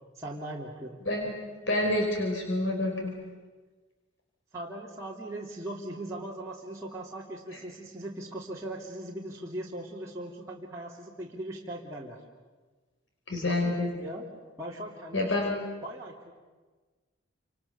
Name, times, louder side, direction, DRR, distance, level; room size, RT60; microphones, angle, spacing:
voice 1, 0.1-1.0 4.5-12.2 13.4-14.3 14.6-15.3 15.8-16.3, right 1 dB, 15° right, -6 dB, 3.1 m, -39 dB
voice 2, 1.0-1.4 1.7-3.1 7.5-7.6 13.3-13.9 15.1-15.5, left 2 dB, 70° left, 1 dB, 4.8 m, -28 dB
29.5 x 28.0 x 6.9 m, 1.3 s
head